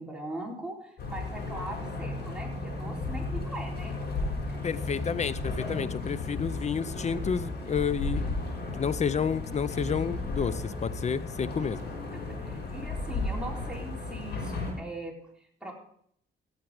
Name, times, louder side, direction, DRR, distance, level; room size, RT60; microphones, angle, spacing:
voice 1, 0.0-4.0 12.1-15.7, right 1 dB, 5° right, -2 dB, 4.0 m, -40 dB
sound 1, 1.0-14.7, left 3 dB, 55° left, 6.0 m, -34 dB
voice 2, 4.6-8.2 8.8-11.8, left 6 dB, 35° left, 17 dB, 0.6 m, -30 dB
16.5 x 7.5 x 5.0 m, 0.66 s
cardioid pair, 90°, 20 cm